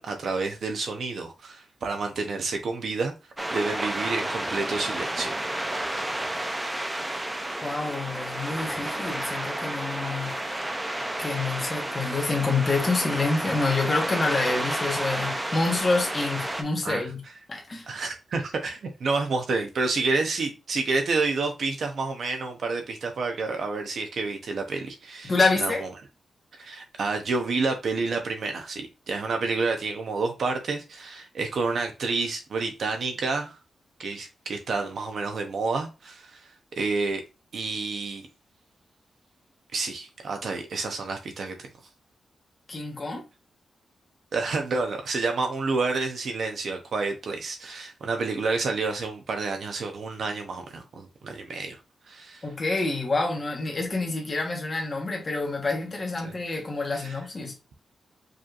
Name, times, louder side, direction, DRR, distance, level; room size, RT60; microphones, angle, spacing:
voice 1, 0.0-3.1 3.5-5.5 16.8-17.1 17.9-25.9 26.5-33.6 34.0-37.2 37.5-38.3 39.7-41.7 44.3-51.8 52.1-52.5 56.2-56.3 56.9-57.2, right 3 dB, 55° right, 0.7 m, -29 dB
sound 1, 3.4-16.6, right 1 dB, 10° right, 0.5 m, -31 dB
voice 2, 7.6-10.4 11.2-17.2 17.5-17.9 25.2-25.8 42.7-43.2 52.4-57.5, left 3 dB, 30° left, 1.1 m, -27 dB
4.9 x 3.1 x 2.4 m
wide cardioid pair, 170°, 0 cm